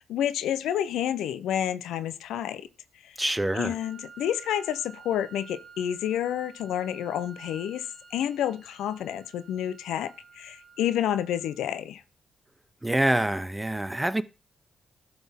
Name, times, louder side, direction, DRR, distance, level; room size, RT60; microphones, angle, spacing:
voice 1, 0.0-2.7 3.0-3.2 3.5-7.9 8.1-12.0, left 10 dB, 80° left, 0.5 m, -29 dB
voice 2, 3.2-3.7 12.8-14.2, right 1 dB, 10° right, 0.6 m, -26 dB
Wind instrument woodwind instrument, 3.8-11.7, right 5 dB, 40° right, 1.5 m, -51 dB
12.0 x 4.0 x 3.5 m
supercardioid pair, 50°, 0 cm